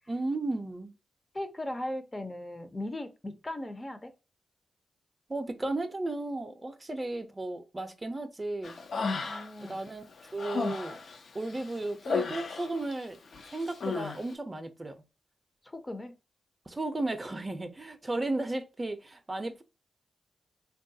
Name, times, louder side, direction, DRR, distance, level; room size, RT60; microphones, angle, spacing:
voice 1, 0.1-0.9 5.3-8.7 9.6-10.0 10.3-11.0 11.3-13.2 13.5-15.0 16.7-19.6, right 2 dB, 25° right, 0.5 m, -34 dB
voice 2, 1.3-4.1 9.2-9.8 15.6-16.2, left 1 dB, 25° left, 0.5 m, -38 dB
Human voice, 8.6-9.7 10.1-13.0 13.3-14.2, left 4 dB, 70° left, 0.5 m, -34 dB
3.5 x 2.3 x 2.6 m
cardioid pair, 60°, 0 cm